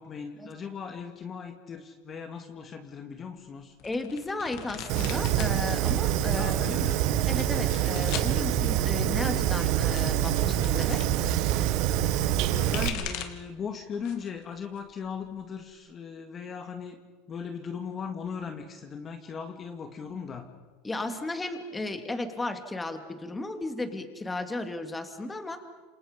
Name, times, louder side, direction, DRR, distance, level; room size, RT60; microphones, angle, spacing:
voice 1, 0.0-3.8 6.3-7.1 12.5-17.0 17.3-20.5, left 6 dB, 30° left, 5 dB, 2.1 m, -38 dB
sound 1, 3.8-5.6 5.9-6.5 7.2-8.3 9.4-11.1 12.4-13.5 13.9-14.4 14.8-15.7, left 10 dB, 60° left, 2.6 m, -40 dB
voice 2, 3.8-6.5 7.3-11.0 20.8-25.7, left 2 dB, 15° left, 6 dB, 2.6 m, -34 dB
Fire, 4.9-12.9, right 12 dB, 60° right, 1.7 m, -26 dB
28.5 x 26.5 x 5.3 m, 1.4 s
supercardioid pair, 110°, 0 cm